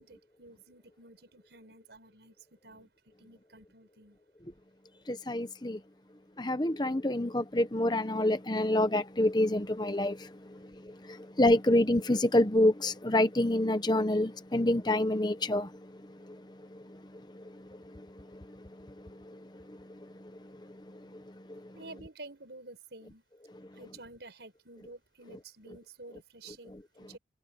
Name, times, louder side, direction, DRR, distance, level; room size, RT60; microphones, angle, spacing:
voice 1, 0.0-4.2 21.7-23.2 23.7-27.2, right 2 dB, 80° right, 5.0 m, -51 dB
voice 2, 5.1-5.8 6.4-21.8, left 1 dB, 25° left, 1.0 m, -29 dB
head